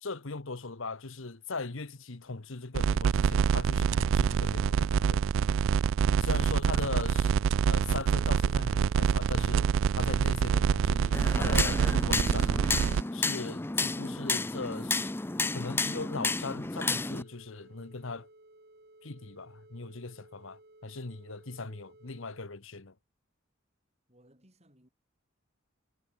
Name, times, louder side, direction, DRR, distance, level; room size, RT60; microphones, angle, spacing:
voice 1, 0.0-5.2 6.3-7.3 7.7-12.8 13.1-15.1 15.5-18.3 19.0-22.9, left 3 dB, 70° left, 1.2 m, -39 dB
sound 1, 2.7-13.0, right 7 dB, 70° right, 0.3 m, -26 dB
sound 2, 6.3-22.5, right 2 dB, 50° right, 2.9 m, -57 dB
sound 3, 11.1-17.2, left 3 dB, 10° left, 0.4 m, -31 dB
voice 2, 24.1-24.9, equal, 30° right, 6.7 m, -62 dB
head